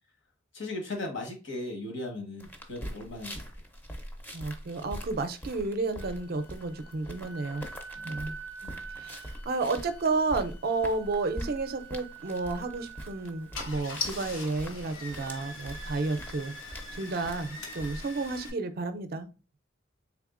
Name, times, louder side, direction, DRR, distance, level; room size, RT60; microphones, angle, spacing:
voice 1, 0.5-3.4 7.9-8.1 8.6-9.0, left 2 dB, 60° left, 1.2 m, -38 dB
sound 1, 2.4-18.0, equal, 10° left, 0.5 m, -43 dB
voice 2, 4.3-7.6 8.0-8.3 9.0-16.5 16.9-19.3, right 3 dB, 50° right, 0.4 m, -31 dB
Wind instrument woodwind instrument, 6.0-13.7, right 5 dB, 45° left, 0.7 m, -47 dB
Car / Engine starting, 12.4-12.6 13.2-13.3 13.5-18.5, left 3 dB, 80° left, 1.0 m, -40 dB
3.5 x 3.3 x 2.4 m
head